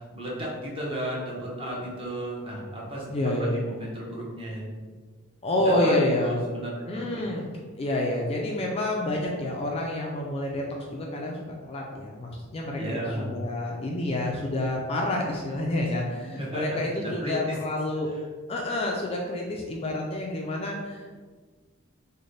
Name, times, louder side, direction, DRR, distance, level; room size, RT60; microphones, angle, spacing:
voice 1, 0.0-4.8 5.5-5.9 6.2-7.2 12.7-13.4 16.3-17.3, right 1 dB, 25° right, -4 dB, 0.8 m, -34 dB
voice 2, 3.1-3.6 5.4-6.4 6.9-10.6 10.9-11.4 11.6-18.1 18.5-21.1, left 1 dB, 30° left, -1 dB, 0.3 m, -28 dB
3.2 x 2.1 x 3.9 m, 1.5 s
head